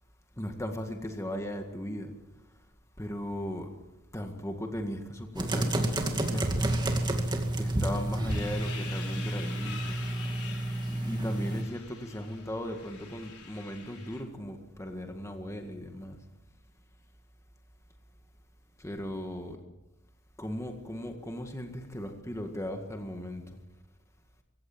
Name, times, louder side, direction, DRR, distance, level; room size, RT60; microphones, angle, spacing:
voice 1, 0.4-2.1 3.0-3.7 4.1-6.5 7.2-10.0 10.8-16.2 18.8-19.6 20.4-23.6, equal, 15° left, 4 dB, 1.9 m, -37 dB
sound 1, 5.3-11.6, right 1 dB, 20° right, 2.3 m, -30 dB
sound 2, 8.3-14.2, left 6 dB, 90° left, 4.2 m, -46 dB
24.5 x 15.5 x 7.4 m, 0.98 s
head